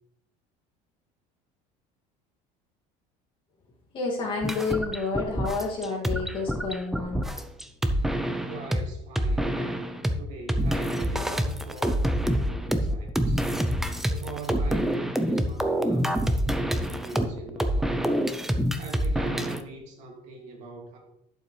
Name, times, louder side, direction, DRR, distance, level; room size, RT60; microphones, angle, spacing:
voice 1, 3.9-7.2, left 4 dB, 35° left, -2 dB, 2.3 m, -29 dB
sound 1, 4.4-8.8 9.2-10.1 10.5-19.6, equal, ahead, 0.5 m, -26 dB
voice 2, 8.4-13.5 14.1-18.1 18.8-21.0, right 3 dB, 50° right, 0 dB, 2.4 m, -42 dB
11.5 x 7.3 x 3.3 m, 0.81 s
cardioid pair, 170°, 16 cm